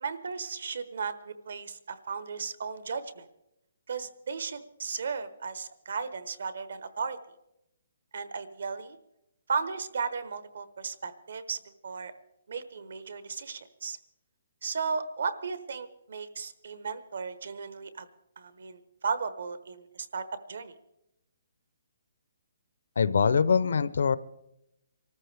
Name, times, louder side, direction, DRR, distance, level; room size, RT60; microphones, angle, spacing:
voice 1, 0.0-3.3 3.9-7.2 8.1-9.0 9.5-12.1 12.5-14.0 14.6-18.1 18.4-20.7, right 5 dB, 60° right, 13 dB, 1.1 m, -35 dB
voice 2, 23.0-24.2, left 6 dB, 60° left, 17 dB, 0.5 m, -23 dB
25.0 x 14.0 x 3.4 m, 0.85 s
hypercardioid pair, 180°, 0 cm